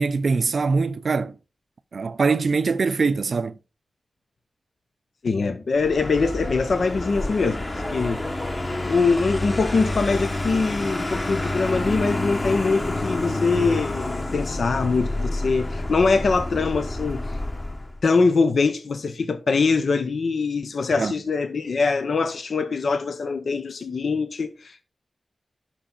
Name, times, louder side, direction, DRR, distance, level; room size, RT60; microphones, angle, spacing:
voice 1, 0.0-1.3 1.9-3.5 20.9-21.1, right 4 dB, 70° right, 0.5 m, -23 dB
voice 2, 5.2-7.6 7.9-8.2 8.8-17.2 18.0-24.8, left 4 dB, 75° left, 0.8 m, -23 dB
Vehicle, 5.8-18.0, left 2 dB, 35° left, 1.5 m, -28 dB
10.0 x 5.8 x 4.0 m
wide cardioid pair, 85°, 0 cm